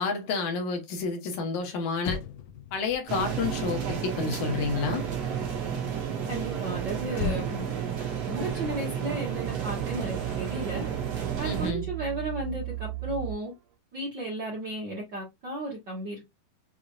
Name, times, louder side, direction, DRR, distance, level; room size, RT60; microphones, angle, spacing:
voice 1, 0.0-2.2 2.7-5.1 11.4-11.9, left 4 dB, 70° left, 2.5 m, -30 dB
Motor vehicle (road), 1.9-5.5 7.1-9.7 10.0-10.3, left 6 dB, 85° left, 2.1 m, -39 dB
sound 1, 3.1-11.7, right 8 dB, 60° right, 2.5 m, -32 dB
voice 2, 6.3-7.7 8.2-10.9 11.4-13.5 13.9-16.2, right 2 dB, 40° right, 1.8 m, -34 dB
sound 2, 8.4-13.6, right 17 dB, 85° right, 2.4 m, -38 dB
6.2 x 3.0 x 2.4 m
omnidirectional pair, 3.6 m